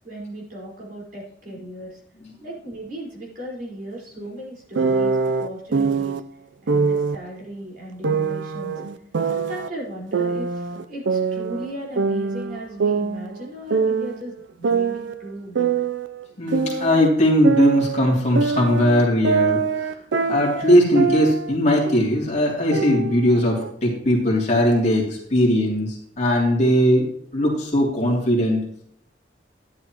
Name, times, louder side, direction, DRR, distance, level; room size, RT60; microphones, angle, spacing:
voice 1, 0.0-2.0 2.4-6.2 6.6-8.7 9.3-15.7, right 1 dB, 50° right, -4 dB, 4.6 m, -36 dB
sound 1, 4.7-6.2 6.7-7.2 8.0-9.7 10.1-11.7 12.0-14.2 14.6-17.1 17.4-21.5 21.8-22.2 22.7-23.7, right 5 dB, 85° right, 0.5 m, -23 dB
voice 2, 16.4-19.9 20.3-27.0 27.3-28.6, equal, 40° left, -3 dB, 2.9 m, -19 dB
12.0 x 10.5 x 3.0 m, 0.64 s
head